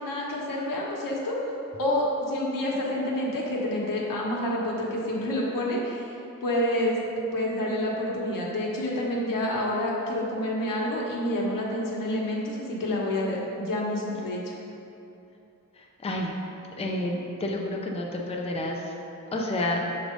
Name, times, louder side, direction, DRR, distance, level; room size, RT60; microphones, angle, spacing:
voice 1, 0.0-1.4 1.8-6.1 6.4-6.9 7.3-14.5, left 1 dB, 85° left, -3 dB, 1.1 m, -28 dB
voice 2, 15.8-16.3 16.8-18.9 19.3-19.8, left 1 dB, 20° left, -1 dB, 0.5 m, -30 dB
6.2 x 3.3 x 5.1 m, 2.8 s
wide cardioid pair, 160°, 32 cm